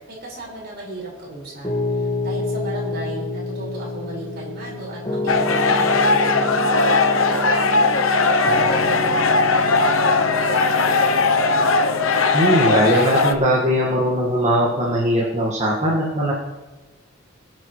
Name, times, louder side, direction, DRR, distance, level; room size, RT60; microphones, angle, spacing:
voice 1, 0.1-11.7, right 2 dB, 50° right, -5 dB, 5.5 m, -35 dB
Piano, 1.6-15.0, left 2 dB, 20° left, 1.9 m, -29 dB
sound 1, 5.3-13.3, left 3 dB, 75° left, 0.9 m, -18 dB
voice 2, 12.3-16.3, equal, 35° right, -4 dB, 1.9 m, -20 dB
24.5 x 9.1 x 3.3 m, 1.2 s
head